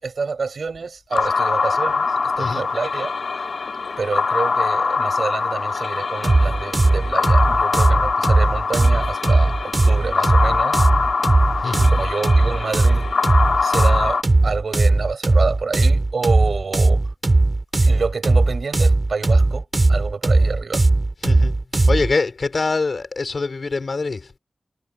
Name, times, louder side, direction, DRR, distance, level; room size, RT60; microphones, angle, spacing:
voice 1, 0.0-2.1 2.4-3.4 4.0-9.5 9.8-10.8 11.6-13.1 13.6-17.0 17.8-20.8, right 4 dB, 65° right, 6.8 m, -28 dB
sound 1, 1.1-14.2, left 4 dB, 70° left, 1.0 m, -23 dB
sound 2, 6.2-22.1, right 2 dB, 30° right, 5.3 m, -17 dB
voice 2, 11.6-11.9 21.2-21.6 21.9-24.4, left 3 dB, 50° left, 6.1 m, -24 dB
wide cardioid pair, 120°, 0 cm